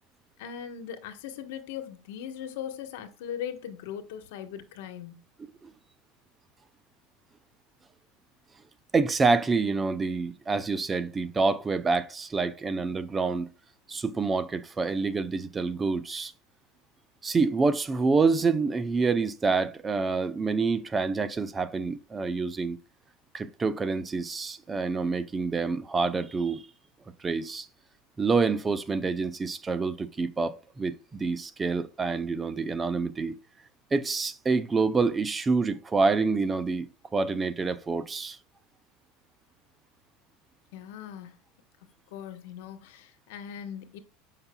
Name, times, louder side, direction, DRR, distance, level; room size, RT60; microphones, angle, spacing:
voice 1, 0.4-5.1 40.7-41.4 42.1-44.0, left 9 dB, 75° left, 1.1 m, -39 dB
voice 2, 8.9-13.5 13.9-16.3 17.2-22.8 23.3-26.6 27.2-27.7 28.2-33.4 33.9-36.9 37.1-38.4, right 4 dB, 15° right, 0.4 m, -27 dB
7.8 x 5.7 x 2.2 m
supercardioid pair, 135°, 0 cm